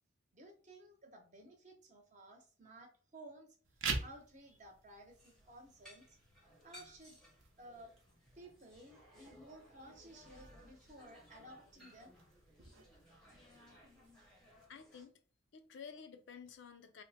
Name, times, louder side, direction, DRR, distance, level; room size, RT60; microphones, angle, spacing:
voice 1, 0.3-3.5 4.0-6.0 6.6-7.2 7.6-7.9 8.3-12.2, right 1 dB, 35° right, 0.8 m, -56 dB
sound 1, 3.6-14.6, right 4 dB, 85° right, 0.7 m, -48 dB
sound 2, 5.1-15.1, equal, 5° left, 0.7 m, -61 dB
voice 2, 14.7-15.2 15.5-17.0, left 6 dB, 65° left, 0.4 m, -52 dB
2.9 x 2.1 x 4.0 m
head